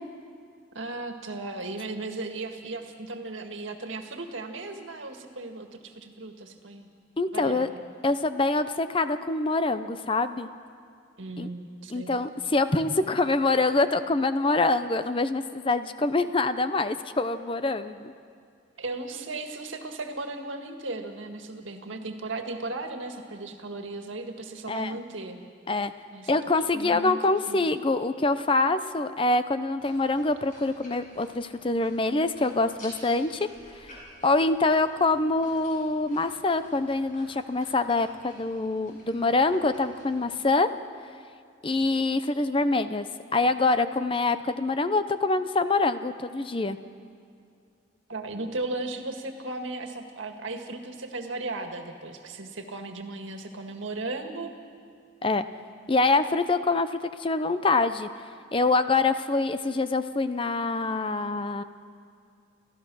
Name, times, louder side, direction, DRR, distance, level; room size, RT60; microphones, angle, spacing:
voice 1, 0.7-6.9 7.3-7.8 11.2-12.2 18.8-25.4 26.1-26.3 26.7-27.6 48.1-54.5, right 2 dB, 85° right, 5 dB, 1.8 m, -36 dB
voice 2, 7.2-7.7 8.0-10.5 11.4-11.5 11.9-18.1 24.7-25.0 25.7-25.9 26.3-33.5 33.8-33.9 34.2-40.7 41.6-43.1 43.3-46.8 55.2-55.5 55.9-58.1 58.5-61.6, left 3 dB, 25° left, 11 dB, 0.6 m, -25 dB
sound 1, 29.8-40.2, equal, 45° left, 7.1 m, -52 dB
29.0 x 14.0 x 6.3 m, 2.3 s
head